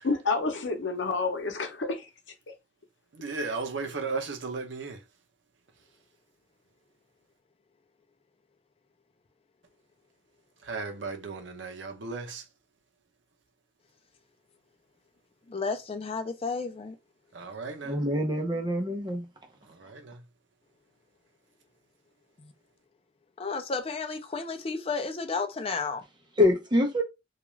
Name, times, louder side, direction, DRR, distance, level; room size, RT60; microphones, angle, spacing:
voice 1, 0.0-2.1, left 3 dB, 85° left, 0.7 m, -29 dB
voice 2, 3.2-5.0 10.7-12.4 17.3-17.9 19.8-20.2, right 4 dB, 80° right, 0.7 m, -35 dB
voice 3, 15.5-17.0 22.4-22.5 23.4-26.0, left 4 dB, 30° left, 0.4 m, -32 dB
voice 4, 17.8-19.3 26.4-27.0, left 1 dB, 25° right, 0.6 m, -25 dB
2.3 x 2.3 x 3.1 m
head